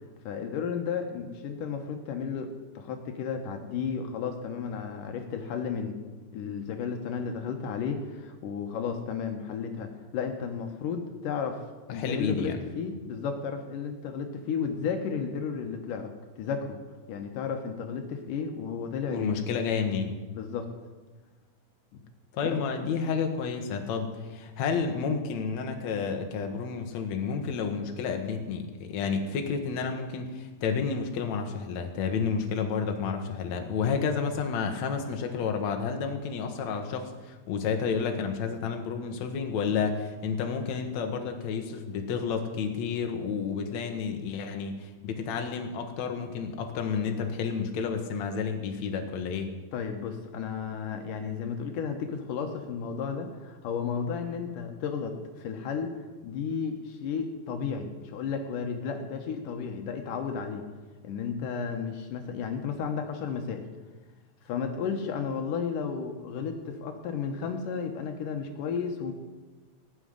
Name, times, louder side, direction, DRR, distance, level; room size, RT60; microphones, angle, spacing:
voice 1, 0.3-6.0 6.3-11.6 11.9-16.8 17.1-19.3 20.3-20.7 49.7-55.9 56.2-60.6 61.0-63.7 64.5-69.1, left 6 dB, 80° left, 5 dB, 2.7 m, -33 dB
voice 2, 11.9-12.6 19.1-20.1 22.3-49.5, left 5 dB, 65° left, 4 dB, 2.4 m, -30 dB
17.0 x 6.4 x 9.6 m, 1.3 s
omnidirectional pair, 3.8 m